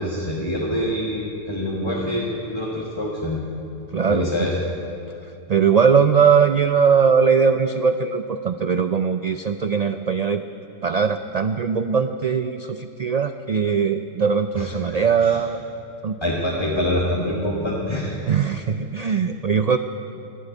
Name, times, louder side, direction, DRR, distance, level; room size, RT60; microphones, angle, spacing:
voice 1, 0.0-3.4 4.1-4.6 14.5-15.4 16.2-18.2, left 1 dB, 20° left, -4 dB, 1.6 m, -25 dB
voice 2, 3.9-4.5 5.5-10.4 10.8-15.6 16.0-16.2 18.3-19.8, right 6 dB, 80° right, 9 dB, 0.3 m, -20 dB
13.5 x 11.0 x 9.1 m, 2.6 s
omnidirectional pair, 1.3 m